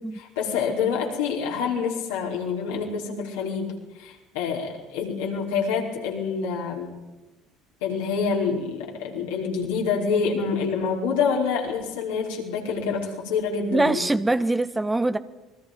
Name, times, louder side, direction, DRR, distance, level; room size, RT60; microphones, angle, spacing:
voice 1, 0.1-3.7 4.0-6.9 7.8-14.0, left 5 dB, 75° left, -1 dB, 5.0 m, -27 dB
voice 2, 13.7-15.2, right 2 dB, 15° right, 12 dB, 1.1 m, -23 dB
29.0 x 21.0 x 5.4 m, 1.1 s
hypercardioid pair, 65°, 0 cm